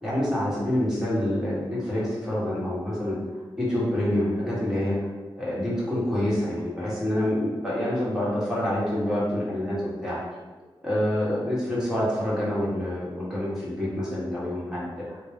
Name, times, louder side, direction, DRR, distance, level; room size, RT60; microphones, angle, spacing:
voice 1, 0.0-3.2 3.6-5.0 5.4-9.8 10.0-10.2 10.8-15.2, left 1 dB, 5° right, -8 dB, 1.3 m, -27 dB
4.1 x 2.1 x 3.5 m, 1.3 s
wide cardioid pair, 130°, 9 cm